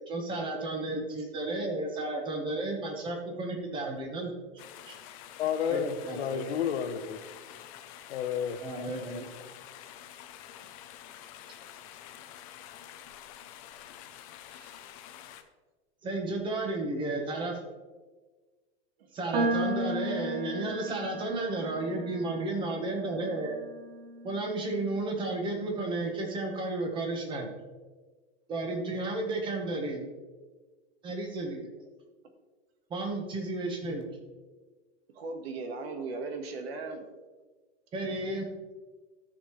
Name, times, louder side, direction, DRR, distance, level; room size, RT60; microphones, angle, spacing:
voice 1, 0.0-4.3 4.9-5.0 5.7-6.4 8.6-9.3 16.0-17.6 19.1-23.6 24.2-27.5 28.5-30.1 31.0-31.7 32.9-34.1 37.9-38.5, right 2 dB, 15° right, 2 dB, 1.2 m, -33 dB
sound 1, 4.6-15.4, left 11 dB, 30° left, 0.6 m, -48 dB
voice 2, 5.4-7.2 8.1-8.6, left 8 dB, 70° left, 9 dB, 1.0 m, -31 dB
voice 3, 14.5-14.9 19.0-19.1 35.1-37.0, right 3 dB, 65° right, 6 dB, 1.5 m, -38 dB
sound 2, 19.3-25.7, right 1 dB, 45° right, 1.7 m, -36 dB
14.0 x 6.6 x 3.2 m, 1.3 s
supercardioid pair, 165°, 33 cm